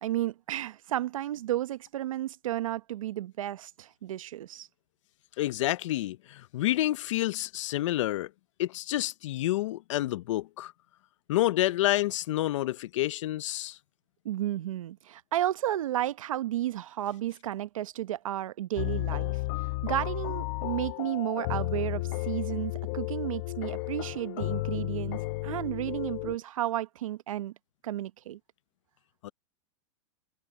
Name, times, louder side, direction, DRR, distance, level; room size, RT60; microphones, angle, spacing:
voice 1, 0.0-4.7 14.2-19.4 19.8-27.5 27.8-28.4, right 13 dB, 90° right, 0.9 m, -32 dB
voice 2, 5.4-8.3 8.6-10.7 11.3-13.8 29.2-29.3, left 15 dB, 65° left, 0.5 m, -29 dB
sound 1, 18.8-26.4, left 19 dB, 45° left, 0.9 m, -33 dB
supercardioid pair, 155°, 17 cm